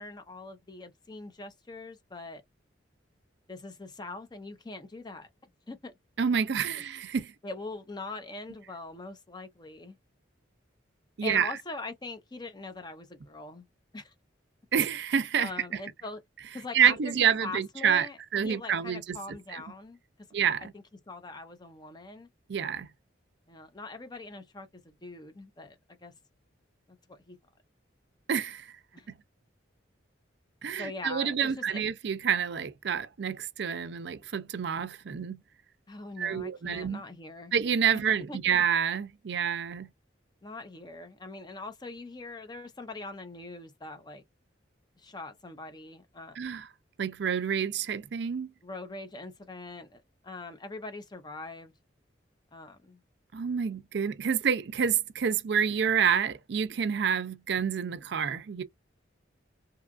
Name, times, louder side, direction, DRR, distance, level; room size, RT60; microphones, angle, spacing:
voice 1, 0.0-2.4 3.5-5.3 5.7-5.9 7.4-10.0 11.2-13.6 13.9-14.1 15.4-16.2 16.5-20.0 20.7-22.3 23.5-26.1 27.1-27.4 28.9-29.1 30.8-31.8 35.9-37.5 37.9-38.4 40.4-44.2 45.0-46.4 48.6-51.7 52.5-53.0, left 3 dB, 20° left, 0.6 m, -42 dB
voice 2, 6.2-7.3 11.2-11.5 14.7-15.5 16.7-18.1 18.3-19.2 19.5-19.6 20.3-20.7 22.5-22.9 28.3-28.7 30.6-35.4 36.2-37.0 37.5-39.9 46.4-46.7 47.0-48.5 53.3-58.6, right 7 dB, 60° right, 0.4 m, -28 dB
2.8 x 2.4 x 2.3 m
head